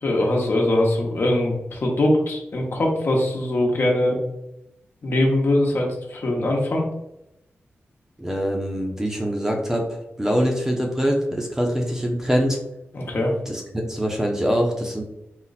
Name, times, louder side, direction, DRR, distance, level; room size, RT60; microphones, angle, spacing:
voice 1, 0.0-4.2 5.0-6.8 12.9-13.3, left 1 dB, 55° left, 0 dB, 1.0 m, -22 dB
voice 2, 8.2-9.9 10.2-12.6 13.5-15.0, equal, 10° right, 1 dB, 0.7 m, -23 dB
4.2 x 2.4 x 4.1 m, 0.85 s
wide cardioid pair, 100°, 5 cm